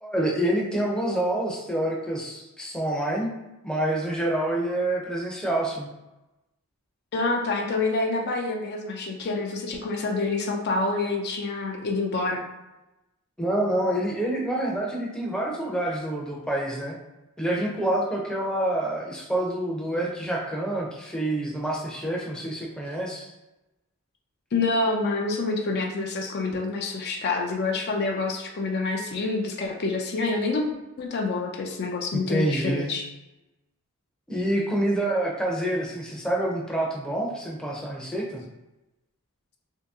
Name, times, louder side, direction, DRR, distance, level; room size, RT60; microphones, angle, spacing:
voice 1, 0.0-3.3 3.6-5.9 13.4-17.0 17.4-23.3 32.1-32.9 34.3-38.4, right 1 dB, 5° left, -3 dB, 0.6 m, -27 dB
voice 2, 7.1-12.4 24.5-30.6 31.0-33.0, left 3 dB, 45° left, 1 dB, 0.4 m, -27 dB
2.8 x 2.8 x 3.5 m, 1.0 s
head